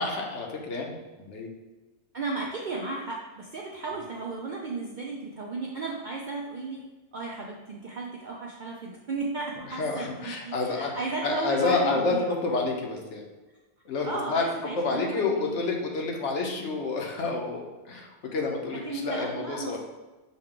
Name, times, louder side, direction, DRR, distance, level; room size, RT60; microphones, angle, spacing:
voice 1, 0.0-1.5 9.7-10.9 11.2-13.2 13.9-19.8, left 3 dB, 70° left, 1 dB, 1.0 m, -29 dB
voice 2, 2.1-6.8 7.1-12.3 14.0-15.6 18.7-19.8, right 3 dB, 65° right, -2 dB, 0.5 m, -34 dB
6.2 x 2.3 x 3.7 m, 1.2 s
omnidirectional pair, 1.3 m